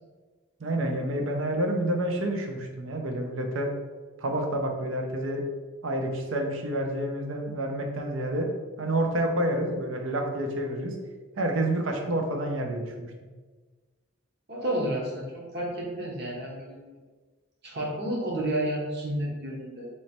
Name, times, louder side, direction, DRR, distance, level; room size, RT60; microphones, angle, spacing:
voice 1, 0.6-3.7 4.2-5.4 5.8-8.5 8.8-11.0 11.4-13.1, right 1 dB, 70° right, 3 dB, 0.6 m, -28 dB
voice 2, 14.5-17.0 17.6-19.9, right 1 dB, 50° right, -3 dB, 1.0 m, -31 dB
3.1 x 3.1 x 4.2 m, 1.4 s
head